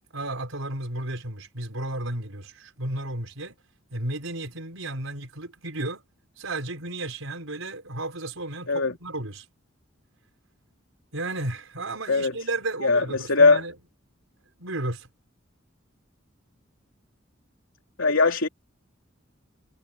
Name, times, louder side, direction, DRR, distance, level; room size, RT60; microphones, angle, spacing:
voice 1, 0.1-3.5 3.9-6.0 6.4-9.5 11.1-13.7 14.6-15.1, right 2 dB, 85° right, 4.8 m, -33 dB
voice 2, 12.8-13.6 18.0-18.5, left 3 dB, 80° left, 3.0 m, -20 dB
head